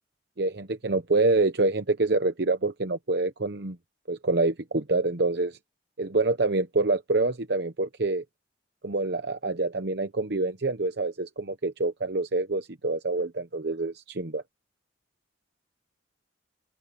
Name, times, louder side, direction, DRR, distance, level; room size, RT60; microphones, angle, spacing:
voice 1, 0.4-3.8 4.1-5.6 6.0-8.2 8.8-14.4, right 3 dB, 60° right, 0.9 m, -26 dB
open air
head